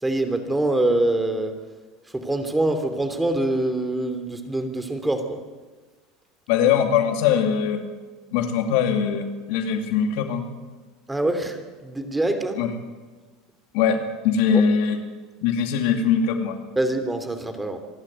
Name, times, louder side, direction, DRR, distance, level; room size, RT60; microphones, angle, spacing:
voice 1, 0.0-1.6 2.1-5.4 11.1-12.6 16.8-17.8, right 1 dB, 10° right, 8 dB, 3.0 m, -24 dB
voice 2, 6.5-7.8 8.3-10.4 12.5-12.7 13.7-15.0 15.4-16.6, left 7 dB, 70° left, 6 dB, 2.5 m, -21 dB
26.5 x 12.0 x 9.4 m, 1.3 s
hypercardioid pair, 85°, 0 cm